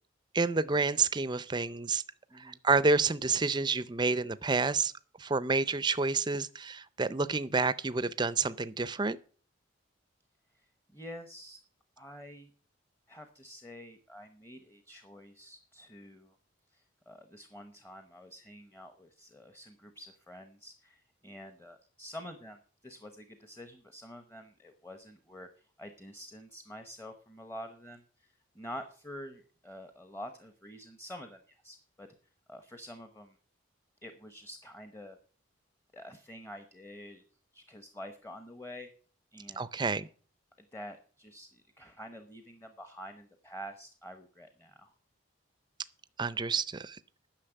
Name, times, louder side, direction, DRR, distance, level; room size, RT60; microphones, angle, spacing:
voice 1, 0.3-2.0 2.4-4.9 5.2-9.2 39.6-40.1 46.2-47.0, right 4 dB, 20° right, 0.5 m, -29 dB
voice 2, 2.3-2.6 10.5-11.6 12.0-12.5 13.1-16.4 16.7-32.1 32.5-33.4 34.0-35.2 35.9-37.2 37.5-38.9 39.3-39.7 40.7-44.9, equal, 10° left, 0.8 m, -48 dB
10.0 x 6.4 x 9.0 m
head